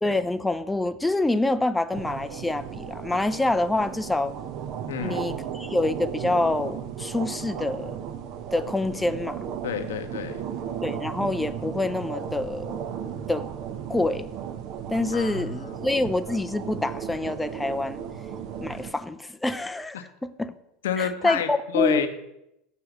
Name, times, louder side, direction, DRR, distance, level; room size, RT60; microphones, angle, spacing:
voice 1, 0.0-4.3 5.0-8.0 8.5-9.4 10.8-12.8 13.3-13.5 13.9-14.3 14.9-18.0 18.6-20.5 21.0-22.1, left 2 dB, 10° left, 11 dB, 0.5 m, -26 dB
sound 1, 1.9-18.9, right 8 dB, 55° right, 0.7 m, -35 dB
voice 2, 4.9-5.4 9.6-10.4 15.1-15.8 19.9-20.0 20.8-22.1, left 7 dB, 80° left, 9 dB, 0.8 m, -29 dB
6.9 x 6.7 x 5.9 m, 0.85 s
hypercardioid pair, 85°, 0 cm